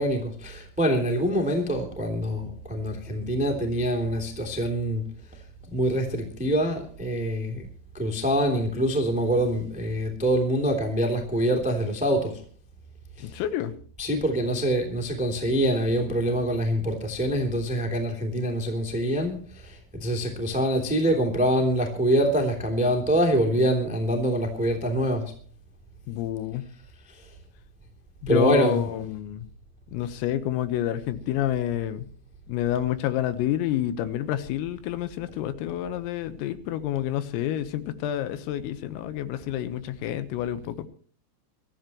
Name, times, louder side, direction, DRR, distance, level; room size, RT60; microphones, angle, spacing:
voice 1, 0.0-5.0 5.7-7.6 7.9-12.4 13.2-13.3 14.0-25.3 27.1-27.2 28.3-28.9, equal, 5° right, 3 dB, 1.1 m, -25 dB
voice 2, 13.2-13.7 26.1-26.6 28.2-29.5 29.9-32.1 32.5-40.9, left 12 dB, 85° left, 11 dB, 3.9 m, -28 dB
24.0 x 14.0 x 3.1 m, 0.42 s
omnidirectional pair, 6.0 m